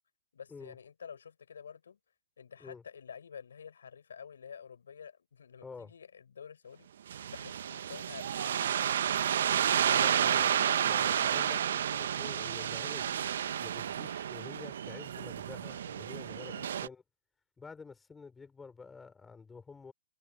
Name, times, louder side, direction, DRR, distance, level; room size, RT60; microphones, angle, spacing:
voice 1, 0.3-2.0 2.4-6.9 7.3-9.0 9.5-10.3 10.6-11.1 16.5-16.7, left 7 dB, 80° left, 5.9 m, -49 dB
voice 2, 5.6-5.9 9.9-10.5 10.8-13.2 13.6-17.0 17.6-19.9, left 4 dB, 10° left, 5.2 m, -49 dB
sound 1, 7.1-16.9, right 9 dB, 65° right, 0.9 m, -31 dB
hypercardioid pair, 145°, 0 cm